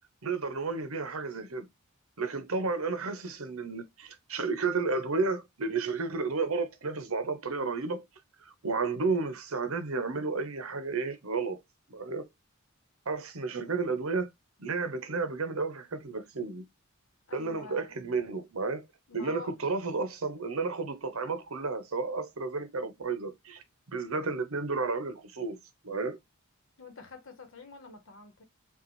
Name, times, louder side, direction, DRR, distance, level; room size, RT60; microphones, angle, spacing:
voice 1, 0.2-1.7 2.2-8.0 8.4-11.6 11.9-12.3 13.1-14.3 14.6-16.6 17.3-18.8 19.1-23.6 23.9-25.6 25.8-26.2, right 4 dB, 75° right, 0.9 m, -32 dB
voice 2, 17.3-17.9 19.1-19.5 26.8-28.4, left 3 dB, 65° left, 1.1 m, -46 dB
5.5 x 2.4 x 3.0 m
head